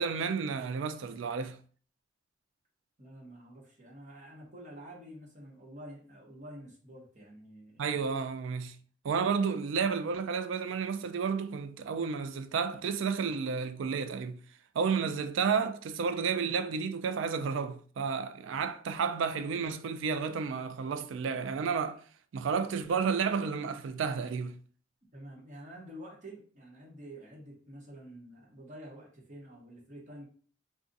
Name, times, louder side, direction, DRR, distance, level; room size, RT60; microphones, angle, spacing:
voice 1, 0.0-1.6 7.8-8.8 9.0-14.4 14.8-22.0 22.3-24.6, right 5 dB, 85° right, 0.4 m, -31 dB
voice 2, 3.0-8.0 25.1-30.3, right 1 dB, 40° right, 1.1 m, -48 dB
2.5 x 2.4 x 3.9 m
head